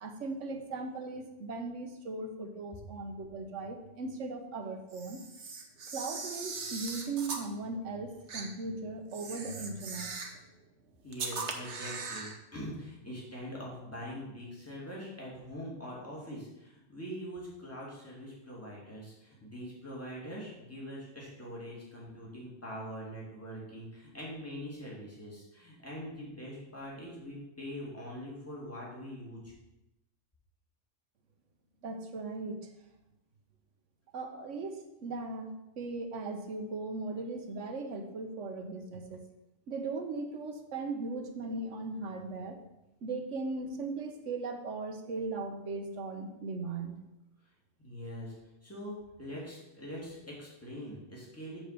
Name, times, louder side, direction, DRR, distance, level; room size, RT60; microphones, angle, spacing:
voice 1, 0.0-5.2 5.9-10.1 31.8-32.7 34.1-39.2 39.7-42.6 43.0-47.0, right 3 dB, 90° right, 6 dB, 1.3 m, -38 dB
Camera, 4.9-7.5 8.3-8.5 9.1-10.4 11.1-12.4, right 4 dB, 70° right, 1.3 m, -39 dB
voice 2, 11.0-29.5 47.8-48.3 48.6-51.6, equal, 10° left, -5 dB, 2.6 m, -43 dB
7.2 x 4.8 x 6.7 m, 0.94 s
omnidirectional pair, 1.2 m